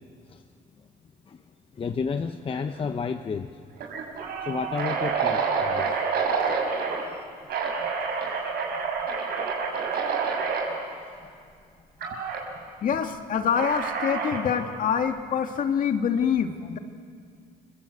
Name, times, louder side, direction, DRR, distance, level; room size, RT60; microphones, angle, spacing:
voice 1, 1.7-3.6 4.5-6.0 6.6-6.7 7.0-7.2 7.8-7.9 10.6-10.8 11.2-11.3, left 5 dB, 30° left, 7 dB, 1.0 m, -32 dB
sound 1, 2.5-2.8 3.1-3.2 3.8-7.0 7.5-10.7 12.0-12.4 13.5-14.5, right 5 dB, 70° right, 6.0 m, -28 dB
voice 2, 12.8-16.8, left 7 dB, 55° left, 5 dB, 2.1 m, -25 dB
29.5 x 23.5 x 8.0 m, 2.2 s
cardioid pair, 110°, 17 cm